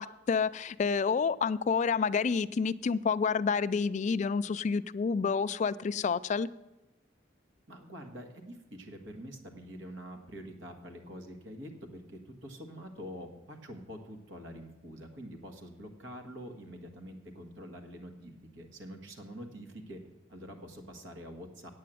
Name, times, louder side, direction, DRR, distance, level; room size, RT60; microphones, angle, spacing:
voice 1, 0.0-6.5, left 5 dB, 40° left, 14 dB, 0.3 m, -29 dB
voice 2, 7.7-20.0 20.3-21.7, equal, 90° right, 4 dB, 1.6 m, -46 dB
8.5 x 8.5 x 7.5 m, 1.0 s
head